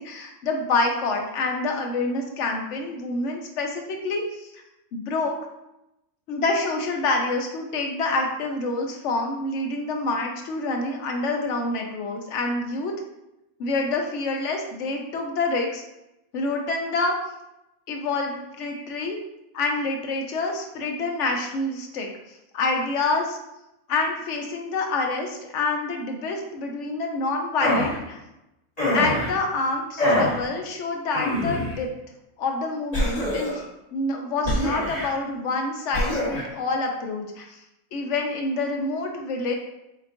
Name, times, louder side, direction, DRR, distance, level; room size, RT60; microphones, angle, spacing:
voice 1, 0.0-4.6 4.9-5.4 6.3-12.9 13.6-15.8 16.3-17.1 17.9-19.2 19.5-22.1 22.5-23.4 23.9-28.2 28.9-31.9 32.4-33.6 33.9-37.6 37.9-39.5, left 3 dB, 60° left, 2 dB, 0.9 m, -27 dB
sound 1, 27.6-28.0 28.8-29.3 30.0-30.4 31.1-31.7 32.9-33.6 34.4-35.1 35.9-36.4, left 1 dB, 25° left, 1.5 m, -24 dB
4.3 x 3.8 x 2.5 m, 0.89 s
omnidirectional pair, 1.7 m